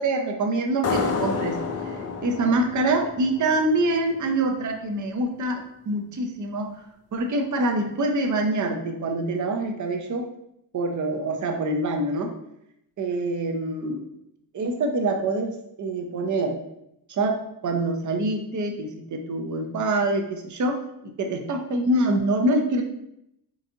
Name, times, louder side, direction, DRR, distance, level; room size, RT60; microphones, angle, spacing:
voice 1, 0.0-1.6 2.2-6.7 7.1-10.3 10.7-12.3 13.0-14.1 14.5-16.6 17.1-22.8, right 2 dB, 45° right, 3 dB, 0.7 m, -25 dB
sound 1, 0.8-4.1, left 4 dB, 35° left, 0.5 m, -29 dB
3.9 x 2.6 x 2.8 m, 0.78 s
cardioid pair, 80°, 42 cm